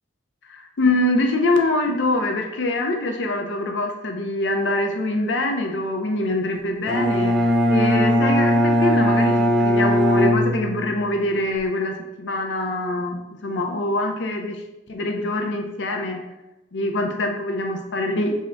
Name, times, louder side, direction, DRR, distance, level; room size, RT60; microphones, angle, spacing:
voice 1, 0.5-14.6 14.9-16.2 16.7-18.3, left 2 dB, 70° left, 3 dB, 0.5 m, -24 dB
Bowed string instrument, 6.9-11.1, equal, 5° left, 0.4 m, -19 dB
3.6 x 2.1 x 3.9 m, 0.98 s
head